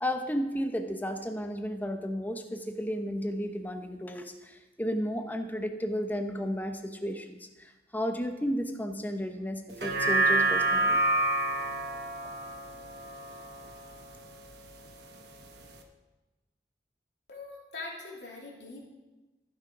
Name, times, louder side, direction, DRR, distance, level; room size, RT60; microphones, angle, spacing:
voice 1, 0.0-11.0, equal, 10° left, 6 dB, 0.7 m, -33 dB
sound 1, 9.7-14.3 14.7-14.8, right 2 dB, 65° right, 1.1 m, -28 dB
voice 2, 17.3-18.8, left 3 dB, 75° left, -3 dB, 2.8 m, -42 dB
14.0 x 5.9 x 5.0 m, 1.1 s
head